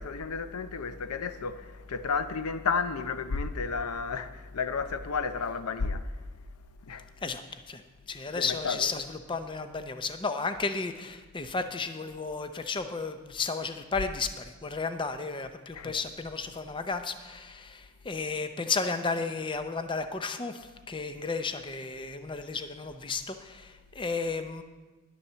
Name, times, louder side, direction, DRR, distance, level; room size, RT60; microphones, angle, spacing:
voice 1, 0.0-6.3 6.8-7.1 8.3-8.9 15.7-16.0, left 5 dB, 90° left, 0.6 m, -32 dB
voice 2, 7.2-24.6, left 4 dB, 20° left, 0.5 m, -33 dB
11.0 x 7.1 x 6.7 m
head